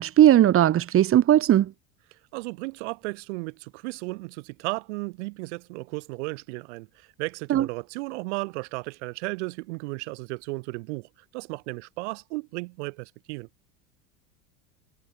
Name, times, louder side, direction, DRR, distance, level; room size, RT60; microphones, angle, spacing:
voice 1, 0.0-1.7 7.5-7.7, right 12 dB, 40° right, 5.4 m, -18 dB
voice 2, 2.3-13.5, right 26 dB, 75° right, 7.8 m, -34 dB
supercardioid pair, 130°, 35 cm